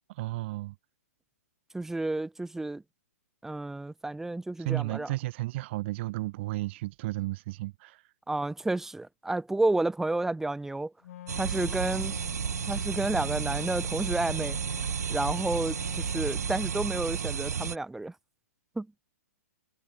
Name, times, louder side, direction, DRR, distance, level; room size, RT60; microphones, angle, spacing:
voice 1, 0.1-0.8 4.6-8.0, right 19 dB, 45° right, 2.4 m, -33 dB
voice 2, 1.7-2.8 3.4-5.1 8.3-10.9 11.4-12.2 12.7-14.6 15.1-18.1 18.8-18.9, right 2 dB, 5° right, 3.1 m, -31 dB
Wind instrument woodwind instrument, 11.0-17.0, left 12 dB, 55° left, 3.0 m, -46 dB
sound 1, 11.3-17.8, right 7 dB, 80° right, 0.6 m, -32 dB
hypercardioid pair, 130°, 9 cm